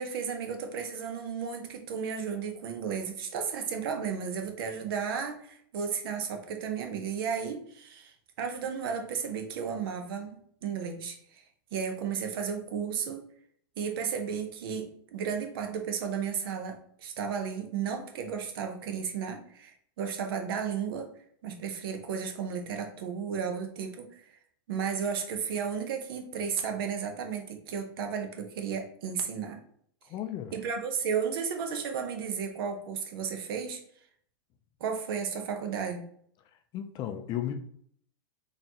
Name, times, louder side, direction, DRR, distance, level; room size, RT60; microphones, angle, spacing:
voice 1, 0.0-11.4 11.7-13.3 13.8-21.1 21.4-24.3 24.7-29.6 30.5-33.8 34.8-36.0, right 6 dB, 65° right, 0.8 m, -34 dB
voice 2, 30.1-30.5 36.7-37.5, left 11 dB, 35° left, 0.4 m, -34 dB
4.1 x 2.9 x 2.8 m
hypercardioid pair, 125°, 13 cm